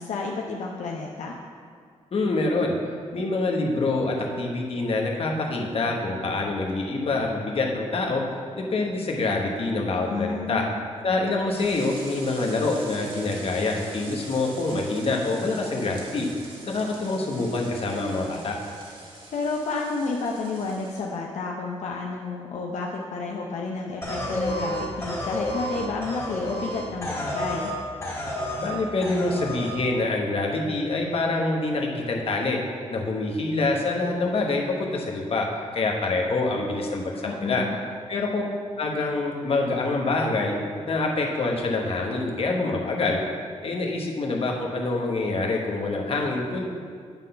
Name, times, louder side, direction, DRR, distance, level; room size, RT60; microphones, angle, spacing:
voice 1, 0.0-1.3 10.1-10.7 19.3-27.7 37.2-37.8, left 3 dB, 75° left, -1 dB, 0.6 m, -31 dB
voice 2, 2.1-2.7 3.1-8.2 8.6-10.6 11.0-16.3 16.7-18.5 28.6-32.6 32.9-35.5 35.7-37.6 38.1-38.4 38.8-40.6 40.9-43.2 43.6-46.6, left 3 dB, 55° left, 0 dB, 1.1 m, -26 dB
sound 1, 11.5-21.0, right 2 dB, 45° right, 1.6 m, -44 dB
sound 2, 24.0-27.8 28.0-28.7 29.0-29.7, left 1 dB, 20° left, 1.9 m, -30 dB
9.0 x 3.8 x 5.6 m, 2.1 s
cardioid pair, 95°, 12 cm